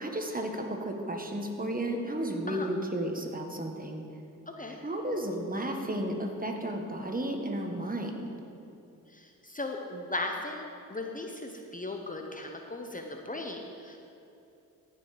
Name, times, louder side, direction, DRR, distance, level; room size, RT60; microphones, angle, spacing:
voice 1, 0.0-4.0 4.7-8.2, right 1 dB, 25° right, 3 dB, 1.4 m, -33 dB
voice 2, 9.1-14.0, left 2 dB, 25° left, 2 dB, 0.9 m, -37 dB
15.0 x 5.6 x 5.0 m, 2.8 s
cardioid pair, 60°, 35 cm